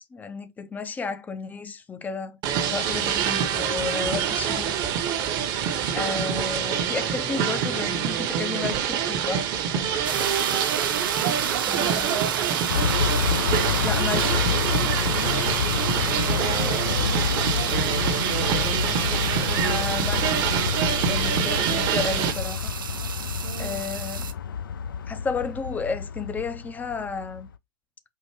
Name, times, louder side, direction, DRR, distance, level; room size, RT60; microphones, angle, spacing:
voice 1, 0.0-2.4 2.7-4.8 5.9-9.5 11.7-12.1 13.8-14.4 19.6-20.5 21.1-22.7 23.6-24.3 25.1-27.5, left 5 dB, 15° left, 0.4 m, -32 dB
sound 1, 2.4-22.3, right 8 dB, 40° right, 0.8 m, -26 dB
sound 2, 10.0-24.3, right 8 dB, 85° right, 0.6 m, -32 dB
voice 2, 11.2-12.7 15.1-15.5 16.2-18.1 23.4-23.8, right 9 dB, 70° right, 1.1 m, -36 dB
sound 3, 12.7-27.5, left 7 dB, 85° left, 0.4 m, -28 dB
4.6 x 2.5 x 2.9 m
hypercardioid pair, 110°, 11 cm